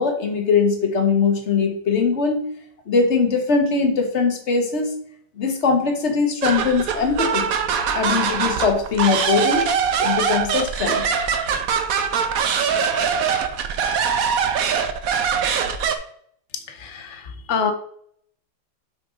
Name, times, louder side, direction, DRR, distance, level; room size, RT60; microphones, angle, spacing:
voice 1, 0.0-2.5 2.9-4.9 5.4-7.5 7.9-9.7 10.0-11.1, left 5 dB, 40° left, 3 dB, 1.2 m, -21 dB
sound 1, 6.4-16.0, right 7 dB, 70° right, 0.8 m, -22 dB
voice 2, 16.7-17.7, left 6 dB, 55° left, 6 dB, 0.8 m, -26 dB
6.0 x 4.7 x 5.1 m, 0.63 s
omnidirectional pair, 2.4 m